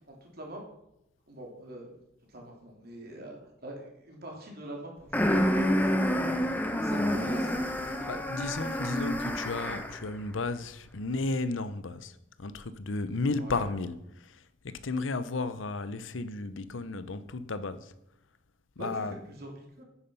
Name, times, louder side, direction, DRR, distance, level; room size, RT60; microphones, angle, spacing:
voice 1, 0.1-0.6 1.3-1.9 2.3-6.1 6.8-8.2 13.4-13.7 18.8-19.8, right 1 dB, 50° right, 3.1 m, -44 dB
sound 1, 5.1-10.0, equal, 10° left, 1.2 m, -28 dB
voice 2, 7.0-7.3 8.1-12.1 12.4-14.0 14.6-17.9 18.8-19.1, left 3 dB, 75° left, 0.8 m, -33 dB
10.0 x 9.4 x 5.6 m
head